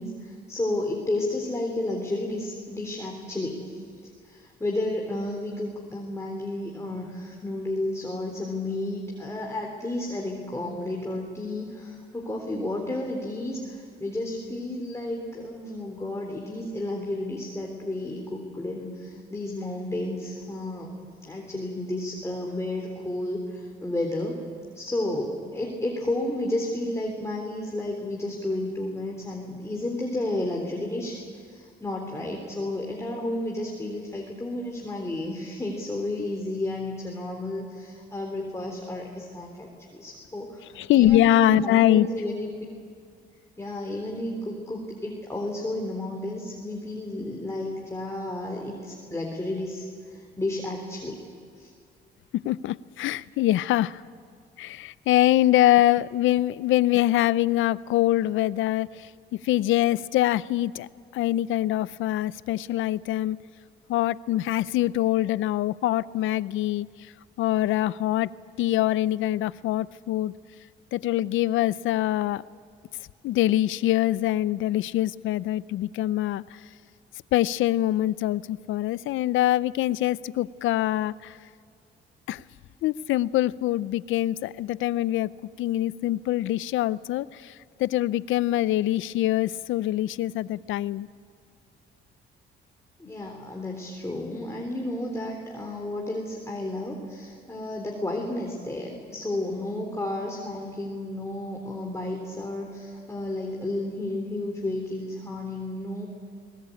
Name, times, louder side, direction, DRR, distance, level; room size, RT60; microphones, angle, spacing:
voice 1, 0.0-3.8 4.2-20.9 21.2-24.4 24.7-42.5 43.6-51.2 51.6-51.7 93.0-106.1, left 1 dB, 15° left, 0 dB, 3.5 m, -32 dB
voice 2, 40.7-42.1 52.3-54.0 54.6-59.1 59.4-60.9 61.1-63.4 63.9-67.1 67.4-68.3 68.6-70.3 70.9-72.4 73.2-76.6 77.3-81.4 82.3-82.4 82.8-85.3 85.6-91.1, left 14 dB, 80° left, 19 dB, 0.6 m, -24 dB
23.0 x 19.0 x 8.5 m, 2.2 s
cardioid pair, 90°, 20 cm